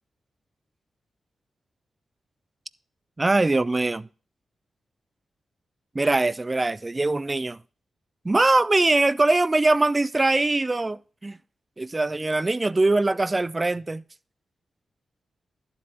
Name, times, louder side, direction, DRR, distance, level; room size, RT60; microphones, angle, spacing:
voice 1, 3.2-4.1 5.9-7.6 8.2-11.4 11.8-14.0, right 2 dB, 30° right, 0.4 m, -22 dB
12.0 x 7.7 x 2.9 m
supercardioid pair, 40°, 0 cm